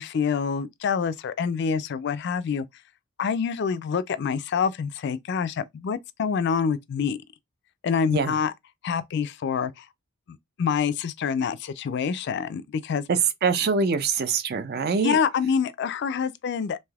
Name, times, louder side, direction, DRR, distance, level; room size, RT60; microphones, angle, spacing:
voice 1, 0.0-2.7 3.2-7.2 7.8-8.5 8.8-9.9 10.3-13.0 15.0-16.8, left 6 dB, 55° left, 0.3 m, -26 dB
voice 2, 13.1-15.2, right 5 dB, 45° right, 0.4 m, -24 dB
3.3 x 2.6 x 2.3 m
head